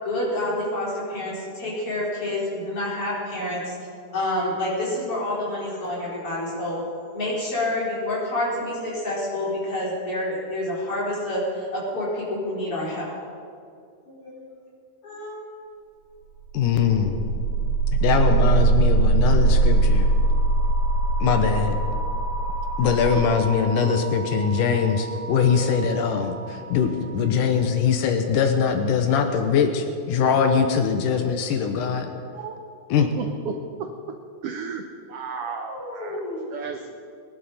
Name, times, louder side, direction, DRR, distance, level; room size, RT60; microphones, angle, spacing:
voice 1, 0.0-3.7 4.1-6.8 7.1-13.2 14.1-14.4 15.0-15.4 35.7-36.6, left 1 dB, 45° left, -7 dB, 5.3 m, -28 dB
voice 2, 16.5-17.2 17.9-20.1 21.2-21.8 22.8-32.1 32.9-33.1, left 6 dB, 80° left, 5 dB, 2.5 m, -22 dB
sound 1, 16.5-26.5, right 3 dB, 55° right, 2.5 m, -22 dB
voice 3, 32.3-32.9 33.2-33.5 33.8-33.9 34.4-34.8 35.1-36.2 36.5-36.9, right 6 dB, 80° right, 5 dB, 1.3 m, -33 dB
22.5 x 11.0 x 4.2 m, 2.4 s
omnidirectional pair, 3.7 m